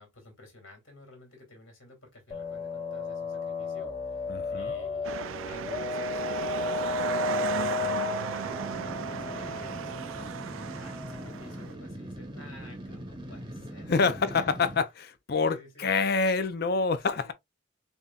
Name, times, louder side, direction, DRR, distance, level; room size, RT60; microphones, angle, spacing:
voice 1, 0.0-13.9 14.3-14.5 15.5-15.9 17.0-17.3, left 2 dB, 70° left, 2.5 m, -52 dB
sound 1, 2.3-11.6, left 4 dB, 25° left, 1.3 m, -34 dB
voice 2, 4.3-4.7 13.9-17.3, left 4 dB, 50° left, 0.5 m, -27 dB
sound 2, 5.0-11.7, right 7 dB, 75° right, 0.4 m, -35 dB
sound 3, 8.4-14.8, right 1 dB, 25° right, 0.9 m, -41 dB
7.0 x 2.7 x 2.3 m
head